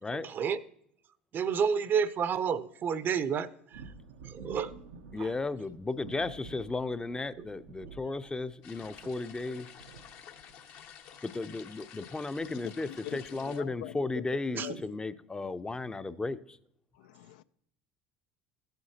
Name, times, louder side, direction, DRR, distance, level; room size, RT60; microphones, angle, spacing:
voice 1, 0.2-0.6 1.3-3.8 4.2-4.7 5.1-5.3 7.4-7.5 14.5-14.8, right 7 dB, 45° right, 0.6 m, -30 dB
sound 1, 3.7-10.8 11.8-11.9 12.2-12.4 13.1-13.2, right 4 dB, 85° right, 0.7 m, -51 dB
voice 2, 5.1-9.7 11.2-16.6, left 3 dB, 15° left, 0.6 m, -35 dB
sound 2, 8.6-13.6, left 8 dB, 60° left, 1.0 m, -51 dB
voice 3, 12.5-14.2 14.5-14.8 16.9-17.4, left 12 dB, 75° left, 0.4 m, -43 dB
14.5 x 7.9 x 2.8 m
hypercardioid pair, 75°, 5 cm